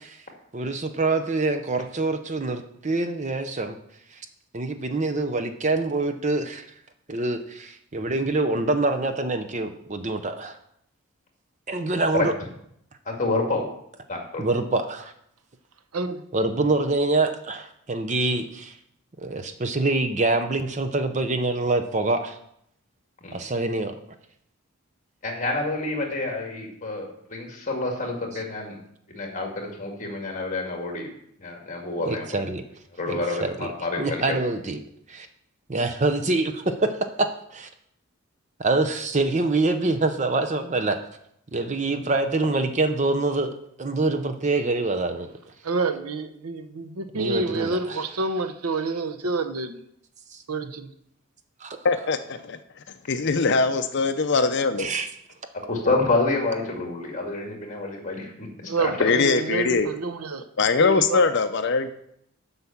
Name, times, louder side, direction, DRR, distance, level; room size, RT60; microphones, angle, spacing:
voice 1, 0.5-3.7 4.5-6.6 7.1-10.6 11.7-12.3 14.4-15.1 16.3-18.7 19.2-22.4 23.3-24.0 32.0-32.6 33.1-33.7 34.0-34.8 35.1-35.3 35.7-36.9 37.5-37.7 38.6-41.0 41.5-43.5 43.8-45.3 47.1-48.0 51.6-51.8 54.8-55.1, right 2 dB, 30° right, 8 dB, 0.6 m, -25 dB
voice 2, 13.1-13.7 14.1-14.5 23.2-23.4 25.2-28.8 29.1-31.1 31.4-32.3 32.9-34.4 55.7-59.1, left 2 dB, 35° left, 1 dB, 1.9 m, -28 dB
voice 3, 45.6-49.8 50.5-50.9 58.7-60.4 60.8-61.2, right 3 dB, 85° right, 10 dB, 0.8 m, -28 dB
voice 4, 51.8-52.6 53.1-54.9 59.0-59.9 60.6-61.9, left 4 dB, 50° left, 9 dB, 0.5 m, -22 dB
7.9 x 5.6 x 7.2 m, 0.73 s
head